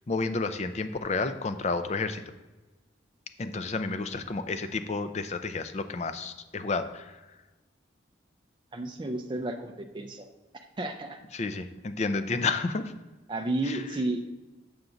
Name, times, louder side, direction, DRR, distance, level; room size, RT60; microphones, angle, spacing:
voice 1, 0.1-2.2 3.4-7.2 11.3-12.9 13.6-13.8, left 3 dB, 35° left, 10 dB, 0.4 m, -31 dB
voice 2, 8.7-10.3 10.8-11.2 13.3-14.3, right 2 dB, 25° right, 4 dB, 0.4 m, -32 dB
6.9 x 5.9 x 3.9 m, 1.1 s
head